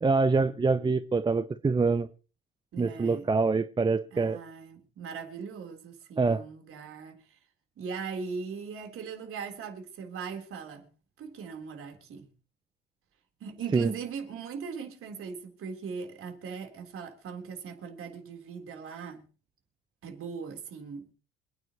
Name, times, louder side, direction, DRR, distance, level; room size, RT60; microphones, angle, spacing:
voice 1, 0.0-2.1 2.8-4.4 6.2-6.4 13.7-13.9, right 4 dB, 15° right, 0.7 m, -25 dB
voice 2, 2.7-3.3 4.1-7.4 7.8-10.9 11.2-12.3 13.4-19.2 20.0-21.1, right 5 dB, 45° right, 3.7 m, -40 dB
27.5 x 9.2 x 3.0 m
figure-of-eight pair, 60°, 30 cm